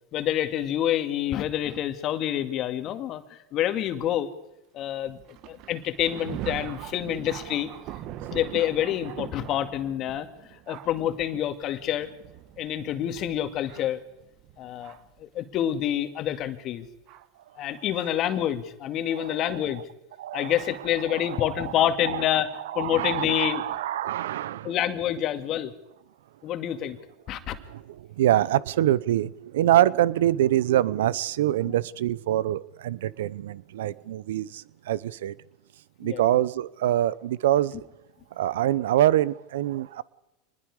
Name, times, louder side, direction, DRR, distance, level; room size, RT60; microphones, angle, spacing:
voice 1, 0.1-4.3 4.7-5.2 5.4-7.7 8.3-10.3 10.7-12.1 12.6-14.0 14.6-16.9 17.6-19.8 20.3-23.7 24.6-25.7 26.4-27.0 27.3-27.6 31.6-31.7 36.0-36.3, left 11 dB, 45° left, 2.1 m, -27 dB
Thunder, 5.3-15.2 16.0-16.1 17.1-17.2 18.0-18.2, right 13 dB, 55° right, 1.2 m, -42 dB
voice 2, 20.2-20.5 21.1-21.7 22.0-22.2 22.7-24.7 27.7-35.3 36.0-37.8 38.4-40.0, right 13 dB, 80° right, 0.7 m, -25 dB
25.5 x 20.5 x 4.9 m
hypercardioid pair, 100°, 0 cm